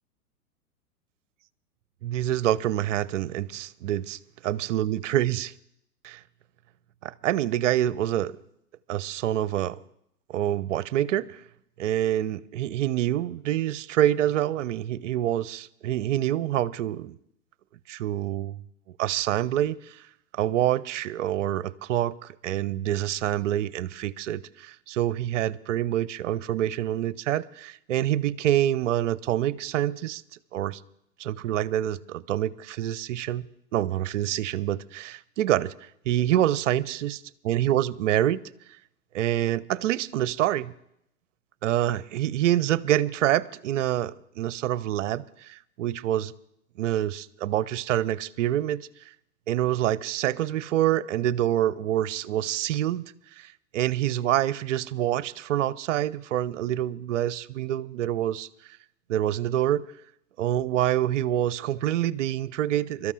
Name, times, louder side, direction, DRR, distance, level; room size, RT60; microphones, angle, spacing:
voice 1, 2.0-4.2 4.4-5.5 6.0-6.2 7.0-8.4 8.9-9.8 10.3-11.4 11.8-17.1 17.9-18.6 19.0-20.0 20.3-30.2 30.5-30.8 31.2-35.7 36.1-37.2 37.4-38.4 39.1-40.7 41.6-46.3 46.8-48.9 49.5-53.1 53.4-58.5 59.1-59.9 60.4-63.1, right 12 dB, 50° right, 0.6 m, -26 dB
27.5 x 13.0 x 2.5 m
figure-of-eight pair, 110°, 47 cm